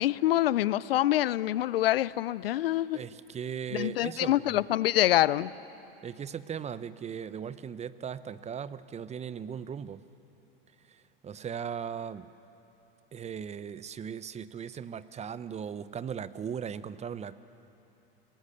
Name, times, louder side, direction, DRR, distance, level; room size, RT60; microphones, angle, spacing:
voice 1, 0.0-3.0 3.7-5.5, left 14 dB, 80° left, 20 dB, 0.6 m, -26 dB
voice 2, 2.9-4.6 6.0-10.0 10.9-12.3 13.1-17.4, right 7 dB, 25° right, 15 dB, 0.7 m, -38 dB
27.5 x 19.0 x 6.9 m, 2.9 s
hypercardioid pair, 90°, 29 cm